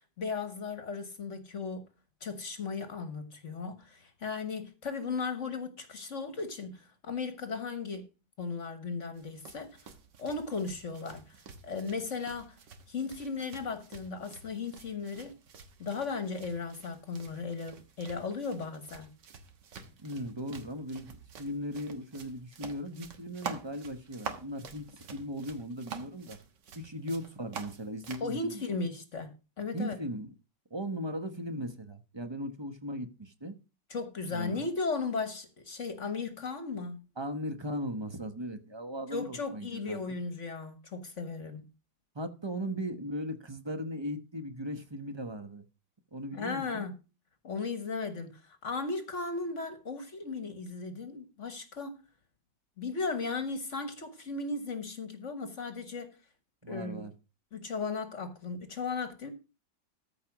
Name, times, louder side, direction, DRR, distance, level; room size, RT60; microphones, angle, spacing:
voice 1, 0.2-1.8 2.2-8.0 8.4-9.7 10.2-12.6 12.9-15.3 15.8-19.1 28.2-29.3 29.6-30.0 33.9-37.0 39.1-41.6 46.3-46.9 47.4-52.0 52.8-56.1 56.7-57.1 57.5-59.3, left 4 dB, 50° left, 1.4 m, -36 dB
sound 1, 9.2-28.3, right 6 dB, 85° right, 2.0 m, -48 dB
voice 2, 20.0-26.4 26.7-28.9 29.7-30.3 30.7-33.5 34.3-34.6 37.2-40.0 42.1-45.6 46.1-46.8 56.6-57.1, equal, 20° right, 0.9 m, -38 dB
14.0 x 5.1 x 5.9 m
omnidirectional pair, 1.8 m